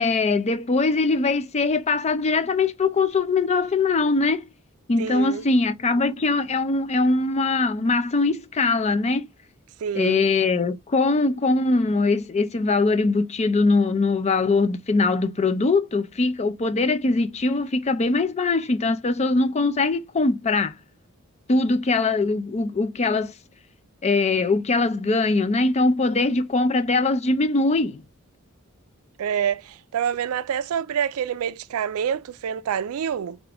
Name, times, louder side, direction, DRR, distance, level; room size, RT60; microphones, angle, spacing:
voice 1, 0.0-4.5 4.9-9.3 10.0-20.8 21.5-23.3 24.0-28.0, left 3 dB, 30° left, 0.4 m, -22 dB
voice 2, 5.0-5.4 9.8-10.2 29.2-33.4, right 8 dB, 75° right, 0.4 m, -27 dB
4.8 x 2.5 x 3.3 m
head